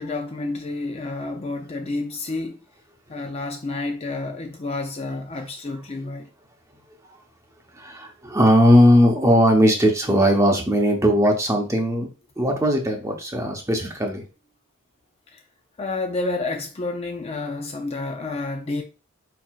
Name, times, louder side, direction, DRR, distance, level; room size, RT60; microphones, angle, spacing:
voice 1, 0.0-2.6 3.1-6.3 15.3-15.4 15.8-18.8, left 2 dB, 30° left, 0.4 m, -29 dB
voice 2, 7.8-12.1 12.4-14.2, equal, 15° right, 0.8 m, -18 dB
4.7 x 4.6 x 2.4 m
head